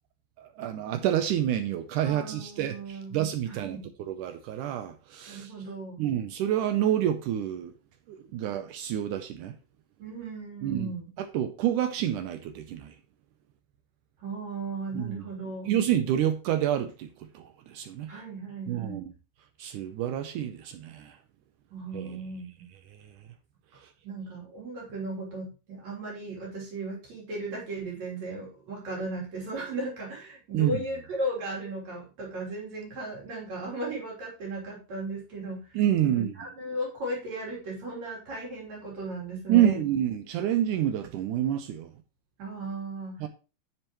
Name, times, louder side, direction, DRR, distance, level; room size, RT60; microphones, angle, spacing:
voice 1, 0.4-5.5 6.0-7.7 8.1-9.6 10.6-10.9 11.2-13.0 14.9-15.1 15.7-18.1 18.7-19.0 19.6-21.2 21.9-22.2 22.9-23.2 23.8-23.9 30.5-30.9 35.8-36.3 39.5-41.9 43.2-43.3, right 11 dB, 80° right, 2.0 m, -28 dB
voice 2, 2.0-3.2 3.5-3.9 5.3-6.0 10.0-11.1 14.2-15.7 18.1-19.0 21.7-22.6 24.0-35.8 36.0-39.8 42.4-43.2, right 2 dB, 50° right, 4.5 m, -36 dB
10.0 x 6.8 x 3.0 m
omnidirectional pair, 4.0 m